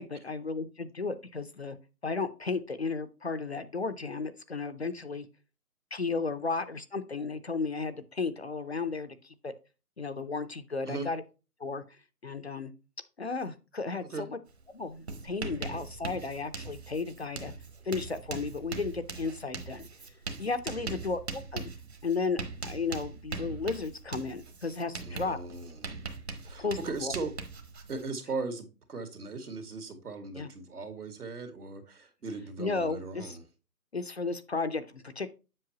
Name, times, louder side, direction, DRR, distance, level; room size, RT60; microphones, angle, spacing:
voice 1, 0.0-1.8 2.0-5.3 5.9-9.5 10.0-11.2 11.6-11.8 12.2-12.7 13.2-14.4 14.7-17.5 17.9-19.9 20.4-21.7 22.0-25.4 26.6-27.1 30.3-30.5 32.6-33.4 33.9-35.3, left 4 dB, 45° left, 11 dB, 0.6 m, -34 dB
Writing, 14.5-14.6 14.9-28.0, right 4 dB, 45° right, 1.1 m, -41 dB
voice 2, 25.0-26.0 26.4-27.3 27.9-33.4, right 3 dB, 75° right, 8 dB, 2.2 m, -38 dB
7.7 x 6.2 x 2.9 m, 0.31 s
hypercardioid pair, 170°, 46 cm